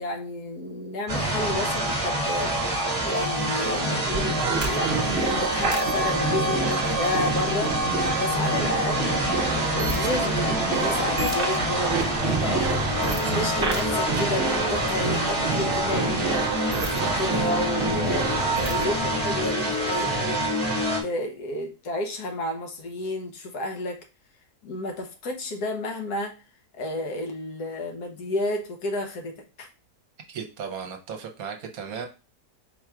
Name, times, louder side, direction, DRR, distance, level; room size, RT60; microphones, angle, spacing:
voice 1, 0.0-18.3 18.7-20.4 21.0-24.0 24.6-26.4 26.8-29.7, left 1 dB, 75° left, 3 dB, 1.4 m, -31 dB
sound 1, 1.1-21.0, right 1 dB, 25° right, 1.1 m, -26 dB
sound 2, 4.1-18.9, right 4 dB, 50° right, 0.7 m, -29 dB
voice 2, 30.3-32.1, right 6 dB, 65° right, 4 dB, 1.1 m, -35 dB
4.5 x 2.4 x 4.4 m, 0.32 s
omnidirectional pair, 1.7 m